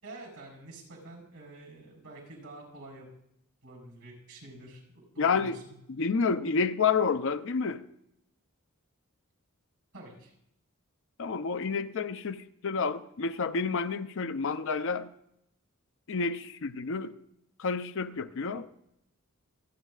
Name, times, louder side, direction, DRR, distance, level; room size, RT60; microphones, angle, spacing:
voice 1, 0.0-3.1 3.6-5.7 9.9-10.3, right 2 dB, 85° right, 4.6 m, -48 dB
voice 2, 5.2-5.6 5.9-7.8 11.2-15.1 16.1-17.1 17.6-18.7, left 5 dB, 60° left, 0.5 m, -29 dB
26.5 x 9.1 x 2.4 m
head